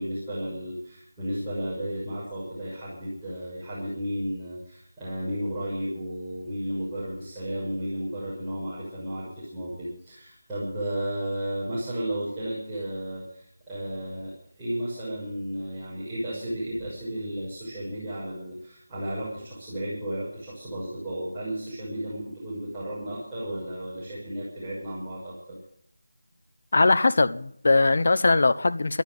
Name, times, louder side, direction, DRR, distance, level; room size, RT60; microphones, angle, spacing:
voice 1, 0.0-25.6, right 1 dB, 5° right, 6.6 m, -33 dB
voice 2, 26.7-29.0, left 3 dB, 45° left, 1.0 m, -20 dB
13.5 x 13.0 x 8.1 m
figure-of-eight pair, 175°, 0 cm